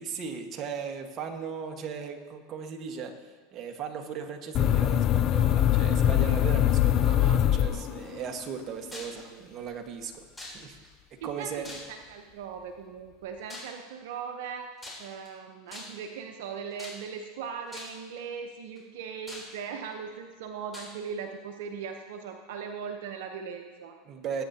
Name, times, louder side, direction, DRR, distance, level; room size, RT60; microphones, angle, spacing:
voice 1, 0.0-3.1 3.5-10.2 10.5-10.8 11.2-11.8 24.0-24.4, right 6 dB, 40° right, 4 dB, 1.6 m, -37 dB
sound 1, 4.5-8.3, left 11 dB, 40° left, 0.5 m, -23 dB
sound 2, 8.9-9.2 10.4-10.9 11.6-12.2 13.5-13.8 14.8-15.3 15.7-16.1 16.8-17.3 17.7-18.1 18.8-18.9 19.3-19.9 20.7-21.0, left 1 dB, 10° left, 3.6 m, -43 dB
voice 2, 11.2-14.7 15.0-24.0, right 6 dB, 75° right, 4 dB, 0.9 m, -39 dB
20.0 x 9.1 x 2.9 m, 1.4 s
supercardioid pair, 110°, 0 cm